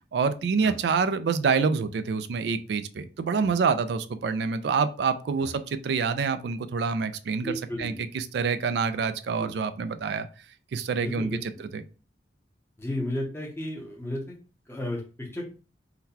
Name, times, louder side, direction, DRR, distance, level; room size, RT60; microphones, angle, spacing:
voice 1, 0.1-7.5 7.8-10.3 10.7-11.3 11.7-11.8, right 5 dB, 70° right, 11 dB, 0.3 m, -26 dB
voice 2, 7.4-8.0 9.4-9.5 11.0-11.6 12.8-14.4 14.7-15.4, left 1 dB, 15° left, -2 dB, 0.7 m, -34 dB
3.8 x 2.2 x 2.7 m, 0.35 s
head